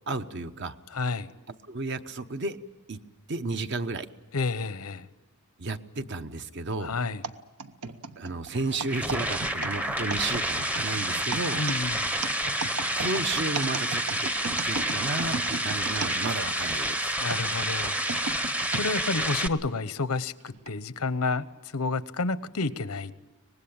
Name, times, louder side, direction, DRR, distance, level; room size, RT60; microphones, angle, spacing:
voice 1, 0.1-0.8 1.7-2.6 2.9-3.0 3.3-4.1 5.6-6.9 8.2-11.7 13.0-17.1, right 3 dB, 50° right, 0.9 m, -33 dB
voice 2, 0.9-1.3 4.3-5.1 6.8-7.2 11.6-12.1 17.2-18.0 18.7-23.1, left 3 dB, 85° left, 0.9 m, -30 dB
sound 1, 7.2-16.8 17.3-18.9 19.5-19.6 20.5-20.7, right 4 dB, 80° right, 1.1 m, -36 dB
sound 2, 8.5-19.5, right 1 dB, 5° right, 0.7 m, -29 dB
24.5 x 20.0 x 8.8 m
head